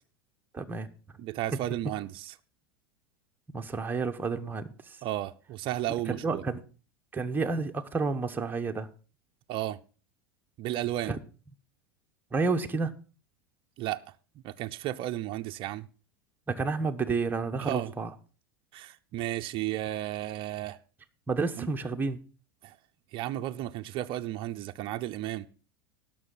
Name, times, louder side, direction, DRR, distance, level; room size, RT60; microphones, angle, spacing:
voice 1, 0.5-0.9 3.5-5.0 6.1-6.6 7.1-8.9 11.0-11.2 12.3-12.9 16.5-18.1 21.3-22.2, right 4 dB, 15° right, 1.1 m, -30 dB
voice 2, 1.2-2.3 5.0-6.4 9.5-9.8 10.6-11.2 13.8-14.0 14.4-15.9 17.6-17.9 18.7-20.8 21.6-21.7 22.6-22.8 23.1-25.5, right 14 dB, 45° right, 0.6 m, -33 dB
17.5 x 6.2 x 3.9 m
hypercardioid pair, 100°, 12 cm